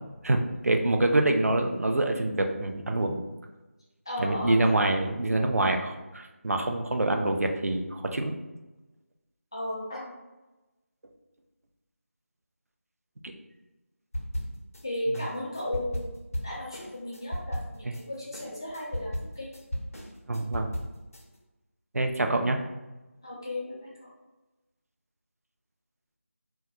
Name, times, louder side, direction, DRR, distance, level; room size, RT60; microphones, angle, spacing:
voice 1, 0.2-3.2 4.2-8.3 13.2-13.3 17.8-17.9 20.3-20.7 21.9-22.6, right 2 dB, 85° right, 4 dB, 0.4 m, -26 dB
voice 2, 4.1-4.6 9.5-10.1 14.8-16.2 16.4-19.5 23.2-24.1, left 1 dB, 20° left, -5 dB, 0.3 m, -35 dB
sound 1, 14.1-14.8 15.1-18.0 18.3-21.2, equal, 80° left, 0.6 m, -35 dB
2.2 x 2.1 x 2.8 m, 1.1 s
figure-of-eight pair, 170°, 8 cm